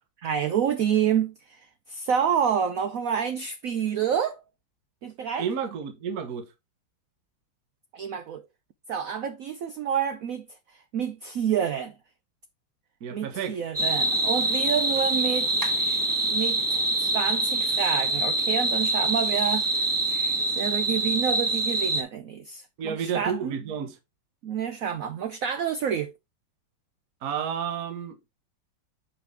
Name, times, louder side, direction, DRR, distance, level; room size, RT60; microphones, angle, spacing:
voice 1, 0.2-1.6 1.9-4.4 5.0-5.4 7.9-8.4 8.9-10.5 10.9-11.9 13.1-15.7 16.3-19.9 20.6-23.6 24.4-26.1, right 8 dB, 90° right, 0.7 m, -28 dB
voice 2, 5.4-6.5 13.0-13.6 22.8-24.0 27.2-28.3, right 7 dB, 50° right, 1.4 m, -31 dB
sound 1, 13.7-22.0, right 2 dB, 10° right, 1.1 m, -25 dB
7.5 x 5.0 x 3.4 m
omnidirectional pair, 2.2 m